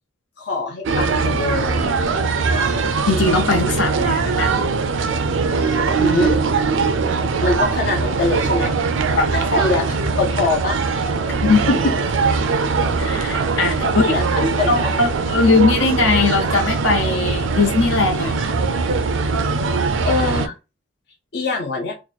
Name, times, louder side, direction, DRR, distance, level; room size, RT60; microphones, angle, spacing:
voice 1, 0.4-2.0 6.0-6.4 7.4-8.7 9.3-10.8 11.0-11.1 13.8-14.2 14.6-14.9 19.8-20.5 21.3-21.9, left 3 dB, 60° left, 0.6 m, -23 dB
sound 1, 0.8-20.5, right 4 dB, 80° right, 0.4 m, -21 dB
voice 2, 3.1-4.5 9.1-9.7 11.4-11.9 13.0-14.2 14.4-18.4, left 3 dB, 80° left, 0.9 m, -19 dB
3.0 x 2.2 x 4.1 m
head